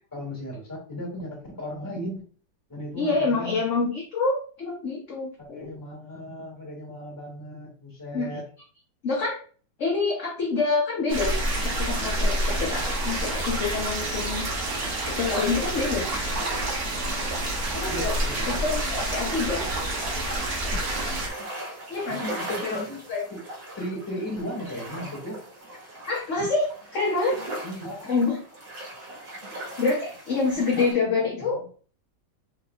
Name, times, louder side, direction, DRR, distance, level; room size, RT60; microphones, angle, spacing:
voice 1, 0.1-2.2 2.7-3.6 5.4-8.4 17.9-18.6 22.1-23.4 23.8-25.4 27.6-28.1 30.5-30.9 31.2-31.7, equal, 10° left, -3 dB, 1.9 m, -36 dB
voice 2, 3.0-5.7 8.1-8.3 9.0-9.4 9.8-11.3 11.6-14.5 15.1-16.0 17.7-18.1 18.5-19.7 21.9-22.2 22.6-22.8 23.1-23.2 26.1-27.4 28.1-28.3 29.8-31.6, left 3 dB, 50° left, -3 dB, 1.1 m, -26 dB
sound 1, 11.1-21.3, right 1 dB, 55° right, 1.6 m, -28 dB
sound 2, 12.8-30.9, right 1 dB, 75° right, 2.3 m, -40 dB
4.6 x 4.0 x 2.4 m, 0.41 s
omnidirectional pair, 2.1 m